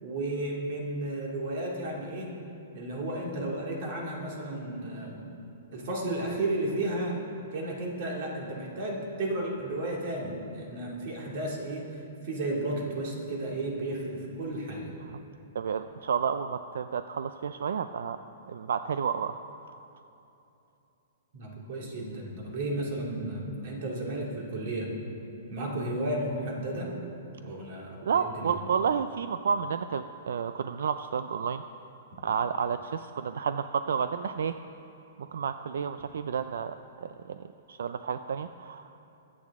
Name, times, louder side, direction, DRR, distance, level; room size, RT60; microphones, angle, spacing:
voice 1, 0.0-2.3 2.7-5.3 5.7-7.2 7.5-11.9 12.2-14.9 21.3-24.9 25.5-26.9 27.4-28.5, right 1 dB, 40° right, -2 dB, 2.3 m, -33 dB
voice 2, 15.5-18.2 18.5-19.4 28.0-31.6 32.2-34.6 35.2-36.7 37.0-38.8, right 6 dB, 75° right, 10 dB, 0.4 m, -31 dB
22.0 x 8.5 x 3.6 m, 2.9 s
hypercardioid pair, 175°, 0 cm